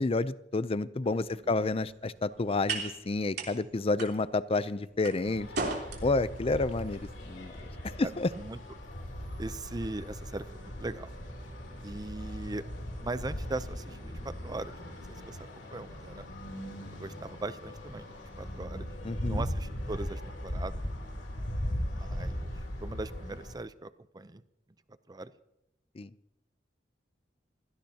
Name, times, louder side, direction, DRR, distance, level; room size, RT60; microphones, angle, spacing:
voice 1, 0.0-5.5 6.0-7.5 8.0-8.3 19.0-19.4 26.0-26.1, left 3 dB, 35° left, 16 dB, 0.5 m, -30 dB
champagne saber, 1.1-9.5, right 3 dB, 65° right, 3.5 m, -41 dB
sound 1, 5.2-23.5, equal, 85° left, 3.4 m, -39 dB
voice 2, 9.4-11.1 11.8-12.6 13.0-16.2 16.9-18.1 18.4-18.9 19.3-20.8 21.8-22.4 22.8-24.4 25.1-25.3, right 2 dB, 20° right, 14 dB, 0.6 m, -39 dB
28.5 x 17.0 x 2.9 m, 0.84 s
head